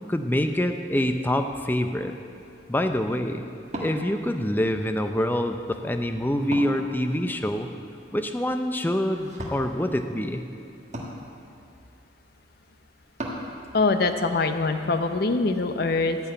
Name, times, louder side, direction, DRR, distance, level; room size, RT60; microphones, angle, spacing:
voice 1, 0.1-2.2 2.7-3.5 3.8-7.7 8.1-10.4, left 1 dB, 10° left, 7 dB, 0.4 m, -26 dB
Wood, 2.3-13.5, equal, 35° right, 1.4 m, -41 dB
voice 2, 13.7-16.2, left 3 dB, 50° left, 8 dB, 0.6 m, -23 dB
13.5 x 4.6 x 8.8 m, 2.6 s
head